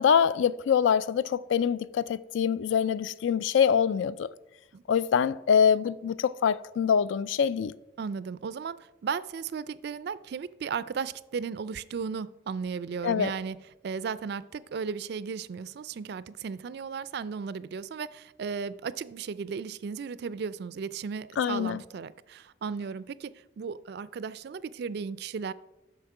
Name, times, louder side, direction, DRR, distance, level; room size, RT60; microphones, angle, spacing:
voice 1, 0.0-4.3 4.9-7.7 13.0-13.3 21.4-21.8, left 7 dB, 70° left, 0.3 m, -24 dB
voice 2, 8.0-13.6 13.8-25.5, right 6 dB, 55° right, 0.3 m, -35 dB
8.0 x 6.2 x 4.8 m
head